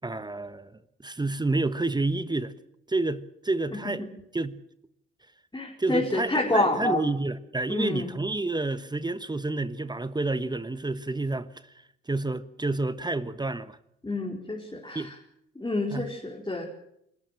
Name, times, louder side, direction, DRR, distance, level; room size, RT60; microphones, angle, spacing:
voice 1, 0.0-0.7 1.0-2.5 2.9-4.0 4.3-4.5 5.8-11.5 12.1-13.8 14.9-15.1 15.9-16.1, right 2 dB, 15° right, 1.3 m, -29 dB
voice 2, 5.5-7.0 7.7-8.1 14.0-15.1 15.6-16.6, left 2 dB, 15° left, 4.4 m, -28 dB
27.0 x 14.0 x 8.9 m
figure-of-eight pair, 50°, 30 cm